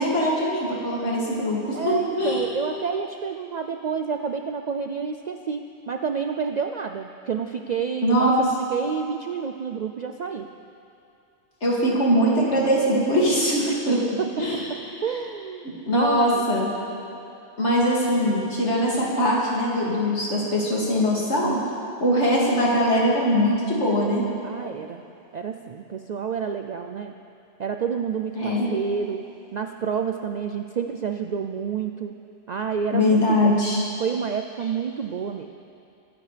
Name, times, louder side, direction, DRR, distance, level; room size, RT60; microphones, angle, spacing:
voice 1, 0.0-2.4 8.0-8.4 11.6-14.0 14.4-14.6 15.9-16.7 17.6-21.6 22.0-24.2 28.4-28.7 32.9-33.8, equal, 75° left, -5 dB, 2.7 m, -22 dB
voice 2, 1.7-10.5 13.7-15.7 15.9-16.4 24.4-25.0 25.3-27.1 27.6-32.2 32.5-33.6 34.0-35.5, right 6 dB, 60° right, 6 dB, 0.4 m, -29 dB
23.5 x 10.0 x 3.3 m, 2.7 s
omnidirectional pair, 1.2 m